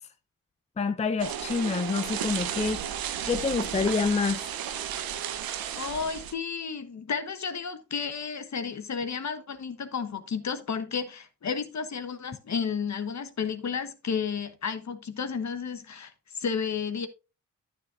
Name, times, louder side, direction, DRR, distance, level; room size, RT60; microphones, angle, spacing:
voice 1, 0.8-2.8 3.3-4.4, left 4 dB, 20° left, 0.6 m, -27 dB
sound 1, 1.2-6.3, right 9 dB, 80° right, 0.8 m, -33 dB
voice 2, 5.7-17.1, left 6 dB, 50° left, 1.2 m, -32 dB
9.5 x 9.4 x 2.4 m
supercardioid pair, 55°, 35 cm